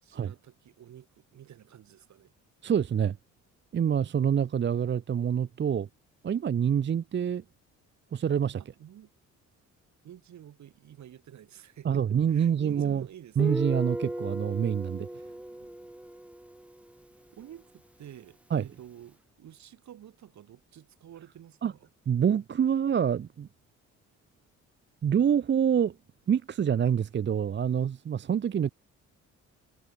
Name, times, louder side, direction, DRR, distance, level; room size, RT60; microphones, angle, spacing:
voice 1, 0.0-2.3 8.6-9.1 10.0-13.6 17.3-21.9, right 11 dB, 65° right, 4.2 m, -50 dB
voice 2, 2.6-3.2 3.7-5.9 6.2-7.4 8.1-8.6 11.8-13.0 13.4-15.1 18.5-18.6 21.6-21.7 22.1-23.5 25.0-25.9 26.3-28.7, right 8 dB, 40° right, 0.7 m, -26 dB
Guitar, 13.4-16.9, right 1 dB, 5° right, 1.2 m, -36 dB
cardioid pair, 90°, 30 cm